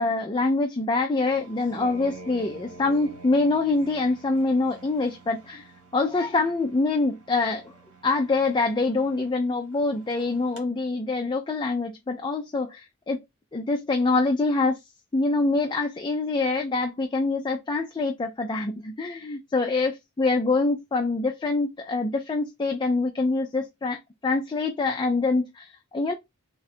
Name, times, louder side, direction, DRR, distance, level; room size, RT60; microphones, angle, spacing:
voice 1, 0.0-5.6 5.9-7.6 8.0-13.2 13.5-14.8 15.1-26.1, left 3 dB, 20° left, 0.4 m, -25 dB
sound 1, 1.3-10.6, right 2 dB, 75° right, 1.2 m, -48 dB
3.6 x 2.3 x 4.1 m
head